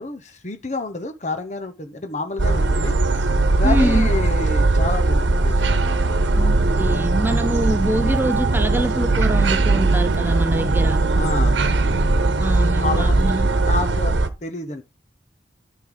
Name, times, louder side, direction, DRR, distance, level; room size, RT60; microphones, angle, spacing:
voice 1, 0.0-3.3 3.6-5.6 11.1-11.6 12.8-13.2 13.6-14.8, left 3 dB, 40° left, 1.0 m, -29 dB
sound 1, 2.4-14.3, right 2 dB, 90° right, 1.0 m, -19 dB
voice 2, 3.6-4.1 6.4-11.0 12.4-13.5, right 1 dB, 10° right, 0.4 m, -24 dB
sound 2, 6.5-13.4, right 4 dB, 75° right, 0.5 m, -31 dB
10.0 x 6.6 x 3.9 m
head